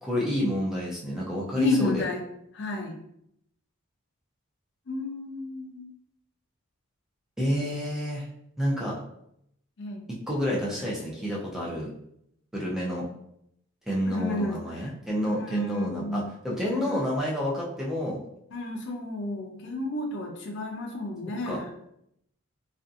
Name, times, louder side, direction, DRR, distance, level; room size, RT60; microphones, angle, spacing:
voice 1, 0.0-2.1 7.4-8.3 8.6-8.9 10.1-11.9 12.5-13.1 13.9-18.2 21.5-21.6, equal, ahead, -5 dB, 0.5 m, -29 dB
voice 2, 1.6-2.2 2.5-3.0 4.9-5.8 9.8-10.1 14.1-14.9 15.3-16.3 16.7-17.0 18.5-21.7, left 2 dB, 55° left, 2 dB, 0.5 m, -31 dB
2.6 x 2.4 x 2.5 m, 0.75 s
head